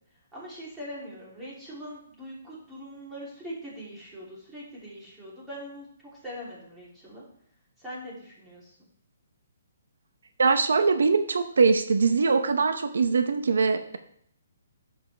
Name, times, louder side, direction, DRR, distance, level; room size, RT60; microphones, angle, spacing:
voice 1, 0.3-5.9 6.2-7.2 7.8-8.7, equal, 10° right, -7 dB, 3.1 m, -41 dB
voice 2, 10.4-14.0, right 4 dB, 85° right, 9 dB, 0.8 m, -22 dB
12.0 x 7.7 x 3.3 m, 0.68 s
hypercardioid pair, 165°, 0 cm